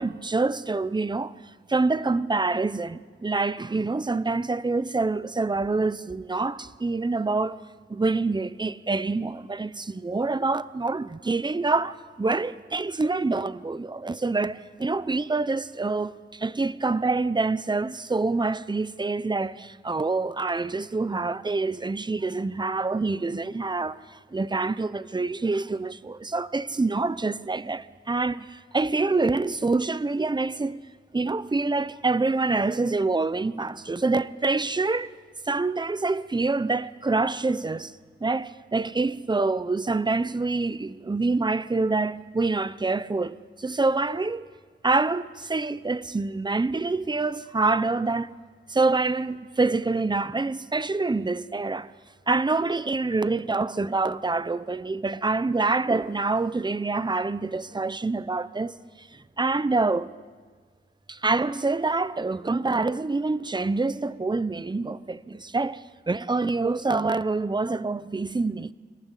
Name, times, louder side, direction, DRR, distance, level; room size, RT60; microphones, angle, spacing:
voice 1, 0.0-1.3 1.7-7.6 7.9-30.8 31.1-35.1 35.5-37.9 38.2-44.5 44.8-48.3 48.7-51.9 52.3-60.1 61.1-68.7, right 3 dB, 20° right, 0.9 m, -26 dB
29.5 x 23.0 x 8.3 m
wide cardioid pair, 100°, 21 cm